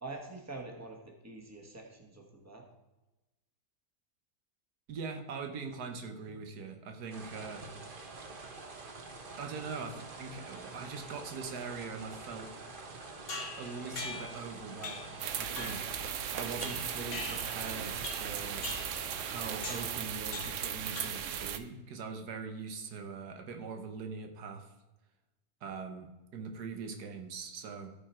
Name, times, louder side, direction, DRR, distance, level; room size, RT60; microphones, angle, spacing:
voice 1, 0.0-2.6, right 2 dB, 10° right, 2 dB, 1.3 m, -45 dB
voice 2, 4.9-7.6 9.4-12.5 13.6-15.9 16.3-18.7 19.2-24.7 25.6-27.9, right 4 dB, 85° right, 5 dB, 1.6 m, -42 dB
sound 1, 7.1-20.0, right 3 dB, 40° right, 1.0 m, -47 dB
sound 2, 13.3-14.4 14.8-15.2 15.6-15.9 16.6-17.7 18.0-18.3 18.6-19.0 19.6-19.9 20.3-20.7 21.0-21.4, left 3 dB, 60° left, 2.0 m, -42 dB
sound 3, 15.2-21.6, right 9 dB, 65° right, 0.8 m, -37 dB
14.0 x 4.8 x 4.4 m, 1.0 s
omnidirectional pair, 1.7 m